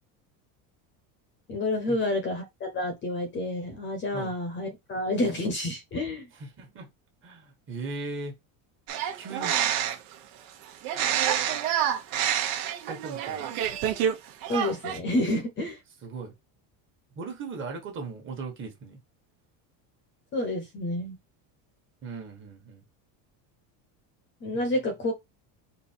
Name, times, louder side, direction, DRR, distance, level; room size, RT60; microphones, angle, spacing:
voice 1, 1.5-6.3 14.5-15.8 20.3-21.2 24.4-25.1, left 1 dB, 25° left, 0.8 m, -29 dB
voice 2, 6.4-6.9 7.2-8.4 9.1-9.5 12.9-13.5 16.0-16.3 17.1-19.0 22.0-22.8 24.5-24.7, right 3 dB, 30° right, 1.4 m, -38 dB
sound 1, 8.9-10.1 10.8-14.1 14.4-15.0, right 10 dB, 70° right, 1.2 m, -27 dB
4.5 x 2.7 x 4.3 m
cardioid pair, 170°, 43 cm